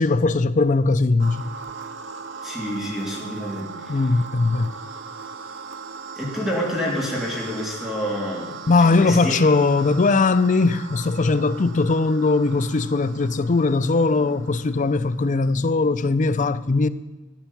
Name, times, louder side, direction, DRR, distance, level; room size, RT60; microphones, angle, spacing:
voice 1, 0.0-1.5 3.9-4.7 8.7-16.9, left 3 dB, 40° left, 0.5 m, -20 dB
sound 1, 1.2-15.3, right 5 dB, 70° right, 0.9 m, -39 dB
voice 2, 2.4-4.0 6.2-8.6 8.8-9.4, equal, ahead, 3.1 m, -28 dB
13.5 x 9.9 x 7.1 m
head